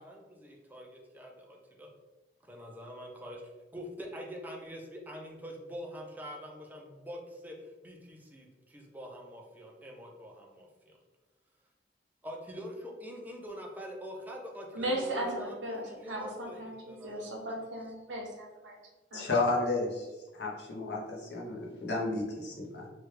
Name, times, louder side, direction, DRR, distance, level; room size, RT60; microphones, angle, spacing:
voice 1, 0.0-1.9 2.5-3.4 3.7-11.0 12.2-17.3, equal, 10° right, 0 dB, 0.4 m, -45 dB
voice 2, 14.7-18.7 19.1-19.3, right 1 dB, 90° right, -2 dB, 0.9 m, -37 dB
voice 3, 19.1-20.1 20.3-22.9, left 2 dB, 65° left, -2 dB, 0.7 m, -32 dB
3.1 x 2.3 x 3.2 m, 1.1 s
head